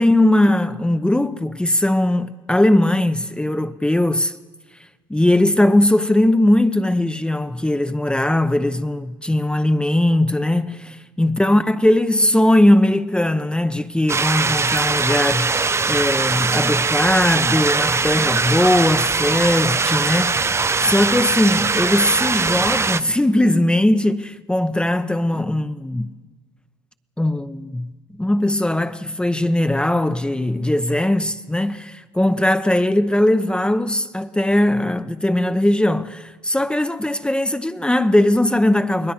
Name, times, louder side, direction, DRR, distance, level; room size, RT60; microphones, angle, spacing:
voice 1, 0.0-4.4 5.1-20.4 20.8-26.1 27.2-27.9 28.2-39.1, left 1 dB, 10° left, 0.8 m, -19 dB
sound 1, 14.1-23.0, right 4 dB, 20° right, 0.6 m, -21 dB
29.5 x 20.5 x 4.3 m
hypercardioid pair, 60°, 12 cm